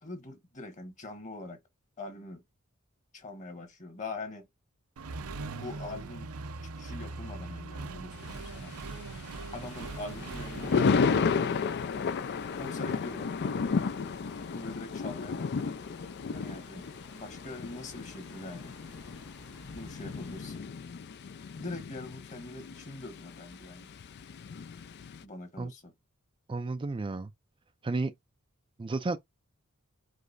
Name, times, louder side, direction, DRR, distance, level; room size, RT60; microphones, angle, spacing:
voice 1, 0.0-1.6 2.0-2.4 3.1-4.5 5.5-6.3 6.6-8.8 9.5-11.4 12.5-13.4 14.5-15.8 16.3-16.9 17.1-18.7 19.7-20.7 21.5-23.9 25.2-25.9, left 2 dB, 35° left, 1.4 m, -43 dB
Accelerating revving vroom, 5.0-11.2, right 3 dB, 85° right, 0.7 m, -41 dB
Thunder, 8.1-25.2, left 5 dB, 50° left, 0.4 m, -33 dB
sound 1, 9.6-20.6, left 1 dB, 90° left, 1.7 m, -52 dB
voice 2, 26.5-27.3 27.8-28.1 28.8-29.2, right 3 dB, 25° right, 0.4 m, -32 dB
5.1 x 2.1 x 3.9 m
head